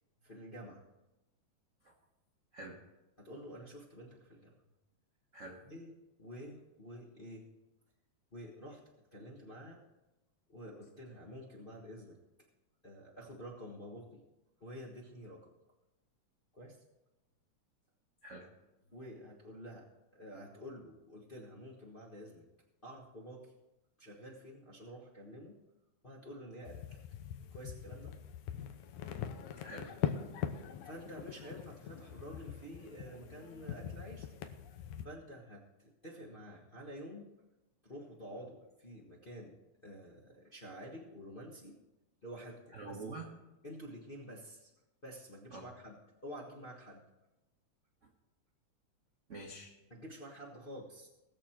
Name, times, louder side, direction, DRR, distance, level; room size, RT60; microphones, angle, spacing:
voice 1, 0.2-0.8 3.2-4.6 5.6-5.9 6.2-7.5 8.3-8.8 9.1-9.8 10.5-12.2 12.8-14.2 14.6-15.5 16.5-16.8 18.9-22.5 22.8-23.5 24.0-25.6 26.0-27.0 27.5-28.2 30.4-34.3 35.0-37.3 37.8-39.5 39.8-41.8 42.2-43.0 43.6-44.7 45.0-47.0 49.9-51.1, equal, 35° left, -3 dB, 0.8 m, -49 dB
voice 2, 5.3-5.6 18.2-18.5 29.1-29.2 29.6-30.0 42.7-43.3 45.5-45.7 49.3-49.7, right 2 dB, 70° right, 0 dB, 0.7 m, -46 dB
sound 1, 26.7-35.0, left 9 dB, 85° left, 2.3 m, -42 dB
20.0 x 7.0 x 4.4 m, 0.98 s
omnidirectional pair, 3.4 m